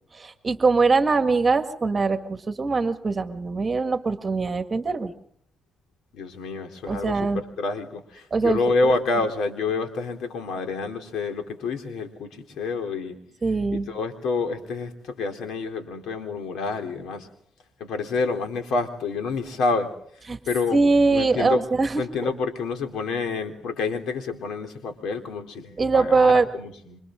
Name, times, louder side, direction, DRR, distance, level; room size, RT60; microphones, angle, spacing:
voice 1, 0.1-5.1 6.9-7.4 8.3-8.9 13.4-13.9 20.3-20.4 20.7-22.3 25.8-26.5, right 4 dB, 30° right, 7 dB, 1.9 m, -22 dB
voice 2, 6.1-7.3 7.6-12.3 12.6-13.2 13.7-17.3 17.8-19.9 20.5-20.8 21.1-21.6 22.0-27.0, left 3 dB, 75° left, 5 dB, 3.6 m, -28 dB
28.5 x 25.5 x 3.9 m, 0.66 s
cardioid pair, 90°, 0 cm